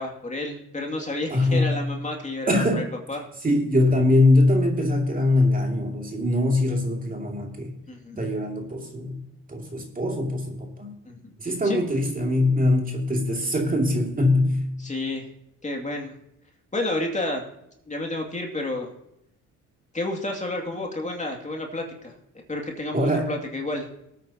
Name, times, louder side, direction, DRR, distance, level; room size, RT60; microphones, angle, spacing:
voice 1, 0.0-3.2 7.9-8.2 11.1-11.2 11.6-11.8 14.8-15.3 15.6-16.1 16.7-17.4 17.9-18.9 19.9-22.1 22.5-23.9, left 2 dB, 25° left, 1 dB, 2.4 m, -30 dB
voice 2, 1.3-1.9 2.5-2.9 3.4-7.8 8.2-9.2 9.5-11.0 11.4-14.6 22.9-23.3, left 1 dB, 30° right, 1 dB, 2.5 m, -22 dB
19.0 x 9.1 x 2.9 m, 0.80 s
cardioid pair, 90°, 30 cm